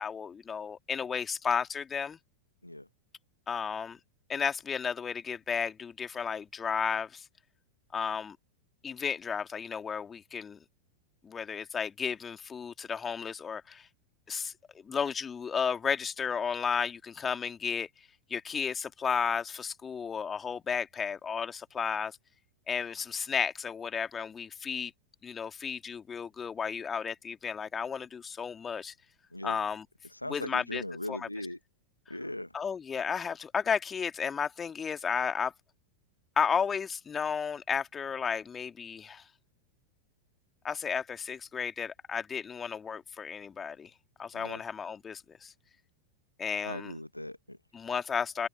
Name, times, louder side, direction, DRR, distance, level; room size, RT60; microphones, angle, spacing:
voice 1, 0.0-2.2 3.5-4.0 4.3-7.2 7.9-8.4 8.8-10.6 11.2-13.9 14.3-14.5 14.8-17.9 18.3-22.2 22.7-24.9 25.2-28.9 29.4-29.8 30.3-30.8 31.1-31.3 32.5-35.5 36.4-39.2 40.6-43.9 44.2-45.5 46.4-46.9 47.7-48.5, left 6 dB, 20° left, 2.3 m, -33 dB
voice 2, 30.1-31.6 32.1-32.5 44.3-44.6 46.6-47.6, left 1 dB, 85° left, 1.3 m, -39 dB
open air
figure-of-eight pair, 90°, 0 cm